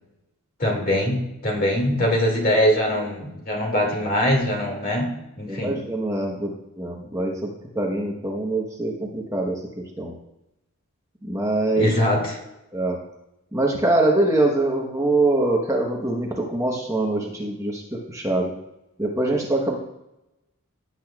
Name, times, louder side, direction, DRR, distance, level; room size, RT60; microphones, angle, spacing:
voice 1, 0.6-5.8 11.8-12.4, left 1 dB, 40° left, 0 dB, 2.3 m, -22 dB
voice 2, 5.5-10.1 11.2-11.8 12.7-13.0 13.5-18.5 19.0-19.8, right 2 dB, 15° right, -1 dB, 1.1 m, -24 dB
16.5 x 8.4 x 2.4 m, 0.91 s
head